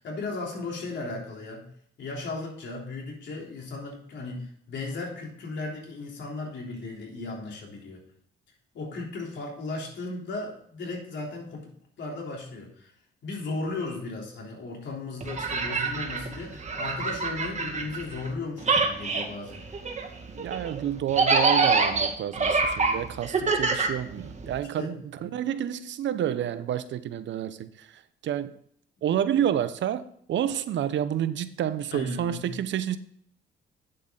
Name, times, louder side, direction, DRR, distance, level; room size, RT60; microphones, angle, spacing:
voice 1, 0.0-1.7 2.0-8.0 8.7-11.7 12.0-12.9 13.2-19.6 24.8-24.9 25.2-25.3 31.9-32.5, left 3 dB, 65° left, 3.6 m, -36 dB
sound 1, 15.2-18.3 18.6-24.6, right 4 dB, 35° right, 1.9 m, -26 dB
voice 2, 20.3-28.6 29.0-30.0 30.3-33.0, right 10 dB, 65° right, 0.8 m, -29 dB
9.0 x 7.8 x 3.9 m
cardioid pair, 90°, 20 cm